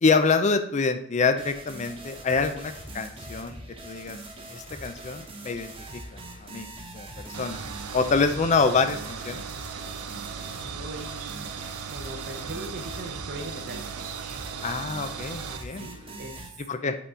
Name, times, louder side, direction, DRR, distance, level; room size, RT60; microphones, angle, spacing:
voice 1, 0.0-3.6 3.8-4.2 4.5-6.7 6.9-7.6 7.9-9.4 14.6-15.9 16.7-17.0, left 4 dB, 30° left, 9 dB, 0.4 m, -26 dB
sound 1, 1.4-16.5, right 1 dB, 25° right, 1.1 m, -42 dB
sound 2, 7.3-15.6, right 7 dB, 90° right, 0.5 m, -38 dB
voice 2, 10.6-11.5 11.9-14.0 15.7-16.9, right 1 dB, 45° right, 2 dB, 0.7 m, -40 dB
8.2 x 4.0 x 3.7 m, 0.66 s
head